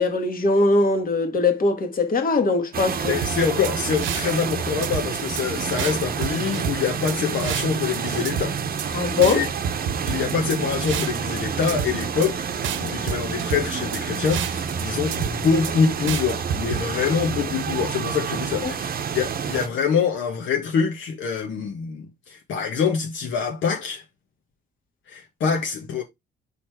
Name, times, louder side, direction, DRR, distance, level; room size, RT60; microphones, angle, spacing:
voice 1, 0.0-3.2 8.9-9.5 18.6-18.7, left 3 dB, 45° left, 1.8 m, -21 dB
sound 1, 2.7-19.7, right 7 dB, 45° right, 0.8 m, -29 dB
voice 2, 3.0-9.5 10.0-24.0 25.1-26.0, left 6 dB, 70° left, 1.4 m, -25 dB
sound 2, 3.2-4.5 4.8-5.4 5.8-8.0 8.2-8.9 9.2-11.4 11.7-12.3 12.6-14.8 15.1-15.7 16.1-16.8, right 8 dB, 80° right, 1.0 m, -30 dB
5.1 x 4.2 x 4.5 m
cardioid pair, 90°, 20 cm